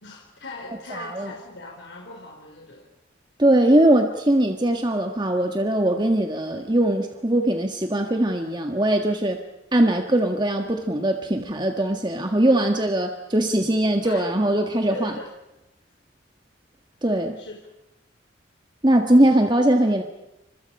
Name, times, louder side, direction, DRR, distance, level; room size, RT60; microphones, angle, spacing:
voice 1, 0.0-2.9 14.0-14.6 14.9-15.3 17.4-17.6, left 2 dB, 70° left, 1 dB, 4.0 m, -39 dB
voice 2, 0.9-1.3 3.4-9.4 9.7-15.1 17.0-17.4 18.8-20.0, right 1 dB, 25° right, 4 dB, 1.6 m, -21 dB
29.5 x 26.0 x 5.6 m, 0.93 s
head